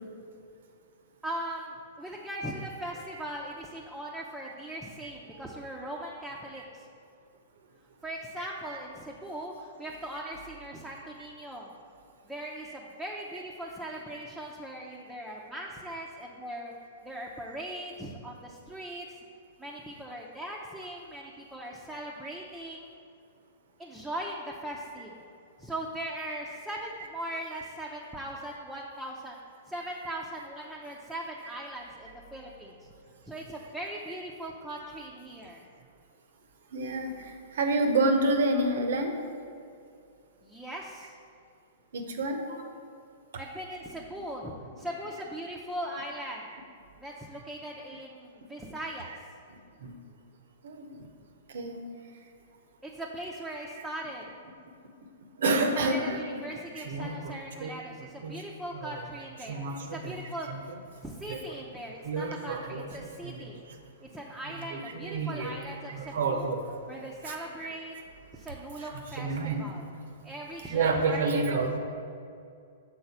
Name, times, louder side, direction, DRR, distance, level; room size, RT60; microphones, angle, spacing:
voice 1, 1.2-6.9 8.0-11.7 12.2-16.7 17.0-19.1 19.6-22.9 23.8-25.1 25.6-29.4 29.7-32.9 33.3-35.6 40.4-41.2 43.4-46.4 47.0-49.1 52.8-54.2 55.7-60.5 61.0-63.6 64.0-66.5 66.9-67.9 68.3-69.9 70.2-71.5, right 1 dB, 5° right, -3 dB, 0.6 m, -39 dB
voice 2, 36.7-39.1 41.9-42.6 45.8-46.0 49.1-49.2 49.8-49.9 50.6-51.0 51.5-51.8 55.4-56.4 56.8-57.7 58.2-58.4 58.7-59.1 59.4-60.2 60.4-60.8 61.3-61.6 62.0-63.5 64.4-65.6 65.9-66.8 67.2-67.7 68.8-69.7 70.7-71.8, right 2 dB, 65° right, 5 dB, 0.8 m, -30 dB
6.5 x 3.9 x 5.7 m, 2.4 s
hypercardioid pair, 110°, 0 cm